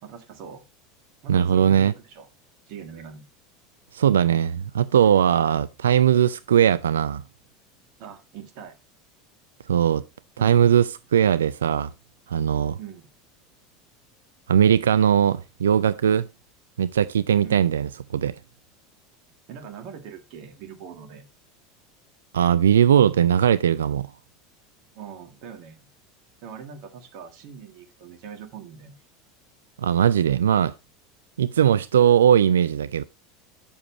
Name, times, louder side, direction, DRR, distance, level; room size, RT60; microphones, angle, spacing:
voice 1, 0.0-0.6 1.2-2.3 2.7-3.3 8.0-8.8 12.8-13.1 17.4-17.8 19.5-21.2 24.9-25.9 26.4-29.0, right 7 dB, 55° right, 1.8 m, -41 dB
voice 2, 1.3-1.9 3.9-7.2 9.7-10.0 10.4-11.9 12.3-12.8 14.5-16.3 16.8-18.3 22.3-24.1 29.8-30.7 31.4-33.0, right 9 dB, 75° right, 0.3 m, -19 dB
8.6 x 7.0 x 3.0 m
figure-of-eight pair, 75°, 0 cm